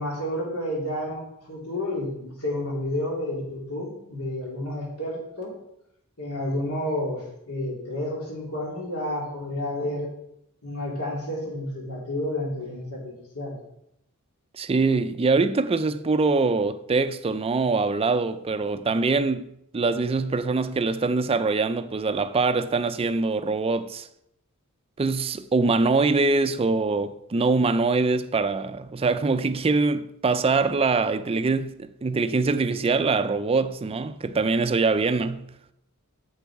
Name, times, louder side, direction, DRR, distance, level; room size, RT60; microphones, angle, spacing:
voice 1, 0.0-5.5 6.2-10.1 10.6-13.6, left 1 dB, 80° left, 2.9 m, -30 dB
voice 2, 14.5-24.1 25.0-35.4, right 3 dB, 25° right, 0.4 m, -23 dB
7.3 x 6.8 x 4.7 m
head